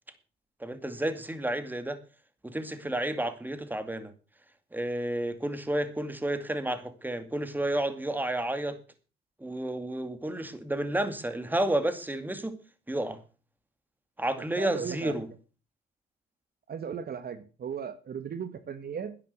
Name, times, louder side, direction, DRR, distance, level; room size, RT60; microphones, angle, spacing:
voice 1, 0.6-2.0 2.4-4.1 4.7-8.8 9.4-12.6 12.9-13.2 14.2-15.3, right 1 dB, 10° right, 10 dB, 2.3 m, -31 dB
voice 2, 14.6-15.1 16.7-19.2, right 7 dB, 50° right, 11 dB, 1.5 m, -36 dB
10.5 x 10.5 x 6.7 m, 0.36 s
cardioid pair, 90°, 20 cm